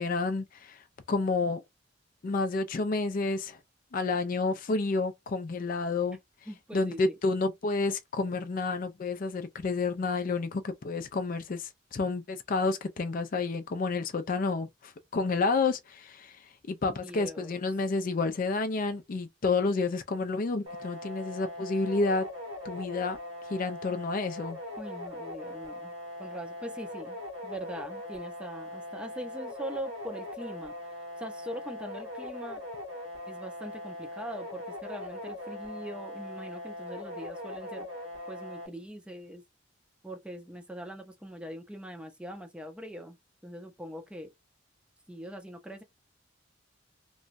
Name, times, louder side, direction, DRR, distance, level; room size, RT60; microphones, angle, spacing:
voice 1, 0.0-1.6 2.2-3.6 3.9-6.2 6.7-22.3 22.6-23.2 23.5-24.6, left 3 dB, 45° left, 0.4 m, -30 dB
voice 2, 6.5-7.1 17.0-17.5 24.8-25.9 26.2-30.7 31.2-32.6 33.3-37.9 38.3-39.4 40.0-43.2 43.4-44.3 45.1-45.8, equal, 5° right, 0.6 m, -42 dB
sound 1, 20.7-38.7, left 1 dB, 75° right, 1.6 m, -41 dB
3.0 x 2.2 x 2.5 m
head